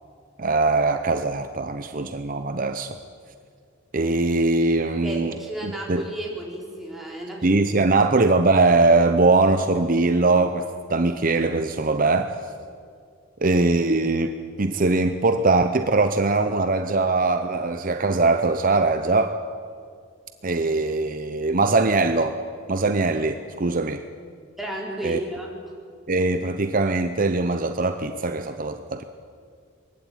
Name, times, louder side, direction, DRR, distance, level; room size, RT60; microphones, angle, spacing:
voice 1, 0.4-3.0 3.9-5.3 5.6-6.1 7.4-12.4 13.4-19.4 20.4-22.4 22.7-24.0 25.0-25.2 26.1-29.0, right 3 dB, 45° right, 8 dB, 0.7 m, -21 dB
voice 2, 4.9-7.6 7.8-7.9 24.6-25.5, right 1 dB, ahead, -3 dB, 4.2 m, -33 dB
22.5 x 15.5 x 9.2 m, 2.2 s
head